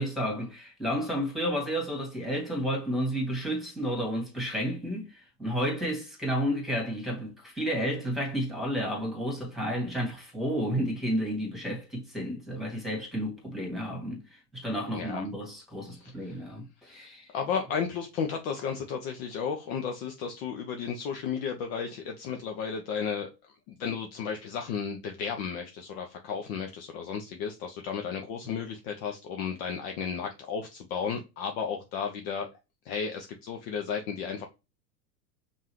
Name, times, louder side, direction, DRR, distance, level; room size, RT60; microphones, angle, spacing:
voice 1, 0.0-17.3, equal, ahead, 1.8 m, -31 dB
voice 2, 14.9-15.3 15.9-16.4 16.8-23.3 23.7-32.5 32.8-34.4, left 6 dB, 40° left, 0.6 m, -34 dB
5.4 x 2.5 x 3.1 m
hypercardioid pair, 95°, 50 cm